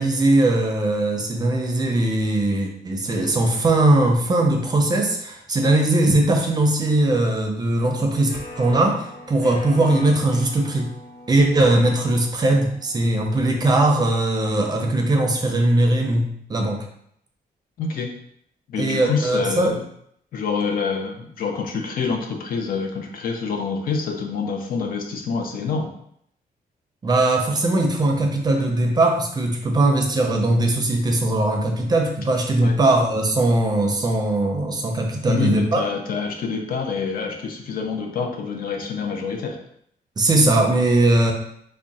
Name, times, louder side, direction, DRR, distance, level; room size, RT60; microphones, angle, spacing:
voice 1, 0.0-10.9 11.3-16.8 18.8-19.8 27.0-35.8 40.2-41.3, right 2 dB, 25° right, 2 dB, 0.5 m, -20 dB
sound 1, 8.3-13.9, left 2 dB, 90° left, 1.1 m, -41 dB
voice 2, 17.8-18.1 18.7-19.8 20.3-25.9 32.6-32.8 35.3-39.6, left 5 dB, 65° left, 3 dB, 0.6 m, -26 dB
3.5 x 2.1 x 4.0 m, 0.70 s
wide cardioid pair, 170°, 16 cm